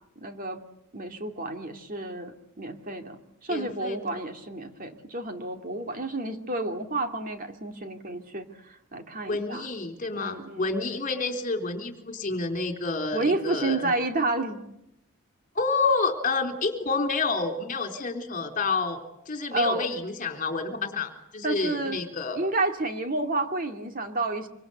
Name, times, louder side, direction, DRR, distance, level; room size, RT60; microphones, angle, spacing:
voice 1, 0.2-0.6 0.9-9.6 10.1-10.6 13.1-14.6 19.5-19.8 21.4-22.0 22.3-24.5, right 2 dB, 40° right, 5 dB, 2.4 m, -30 dB
voice 2, 3.5-4.2 9.3-13.9 15.5-19.0 19.3-22.5, left 3 dB, 35° left, 6 dB, 3.6 m, -29 dB
26.0 x 25.0 x 8.0 m, 0.82 s
head